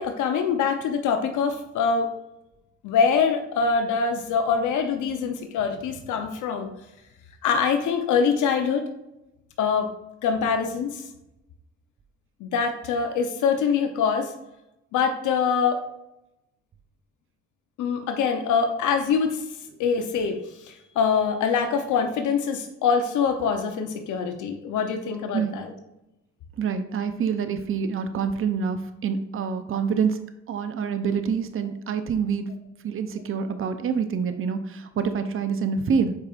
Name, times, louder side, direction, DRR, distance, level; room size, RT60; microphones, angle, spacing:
voice 1, 0.0-2.1 2.8-6.7 7.4-8.9 9.6-9.9 10.2-11.0 12.4-14.3 14.9-15.8 17.8-19.4 19.8-20.4 20.6-25.7, left 6 dB, 80° left, 6 dB, 0.8 m, -24 dB
voice 2, 26.6-30.2 30.5-32.5 32.8-36.1, right 6 dB, 45° right, 9 dB, 0.7 m, -26 dB
8.2 x 5.0 x 2.5 m, 0.91 s
cardioid pair, 90°, 30 cm